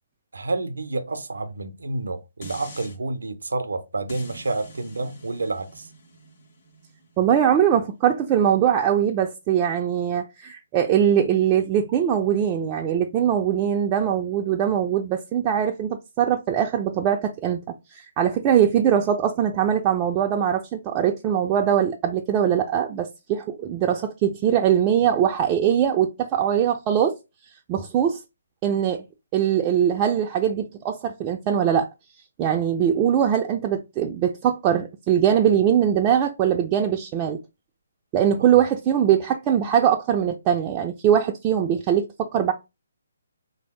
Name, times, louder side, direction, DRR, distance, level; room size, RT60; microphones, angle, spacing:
voice 1, 0.3-5.9, right 2 dB, 80° right, 0.5 m, -29 dB
sound 1, 2.4-3.0 4.1-9.2 9.7-9.8, equal, 50° left, 1.3 m, -46 dB
voice 2, 7.2-17.6 17.9-27.2 27.7-28.2 28.6-29.0 29.3-31.9 32.4-37.4 38.1-42.5, right 9 dB, 25° right, 0.3 m, -21 dB
3.3 x 2.6 x 3.1 m
hypercardioid pair, 150°, 0 cm